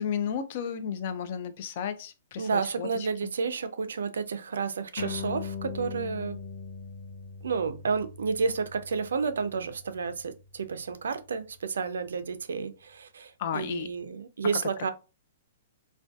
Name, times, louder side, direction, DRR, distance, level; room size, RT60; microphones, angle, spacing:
voice 1, 0.0-2.9 3.2-3.3 13.4-13.9, left 7 dB, 50° left, 0.3 m, -33 dB
voice 2, 2.4-6.4 7.4-14.9, right 5 dB, 85° right, 0.3 m, -31 dB
sound 1, 5.0-11.8, left 5 dB, 65° left, 0.8 m, -41 dB
2.6 x 2.2 x 2.2 m
hypercardioid pair, 145°, 0 cm